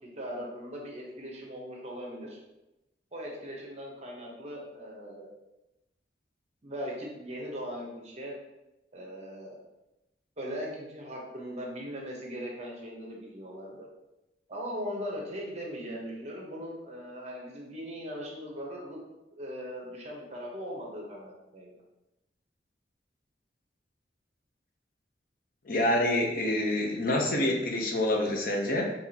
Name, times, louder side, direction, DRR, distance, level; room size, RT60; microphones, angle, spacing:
voice 1, 0.1-2.4 3.1-5.3 6.6-8.4 8.9-9.6 10.4-13.9 14.5-19.0 19.4-21.7, equal, 40° right, -2 dB, 1.0 m, -39 dB
voice 2, 25.7-28.8, left 1 dB, 50° left, 1 dB, 0.8 m, -27 dB
5.8 x 2.8 x 2.9 m, 0.95 s
head